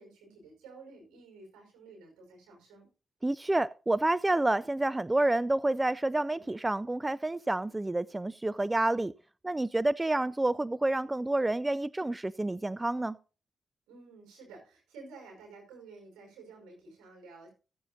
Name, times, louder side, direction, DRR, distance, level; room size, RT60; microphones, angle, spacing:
voice 1, 0.0-2.9 13.9-17.5, right 3 dB, 85° right, 5.5 m, -52 dB
voice 2, 3.2-9.1 9.4-13.2, right 2 dB, 20° right, 0.4 m, -29 dB
16.0 x 9.0 x 2.7 m
supercardioid pair, 45°, 0 cm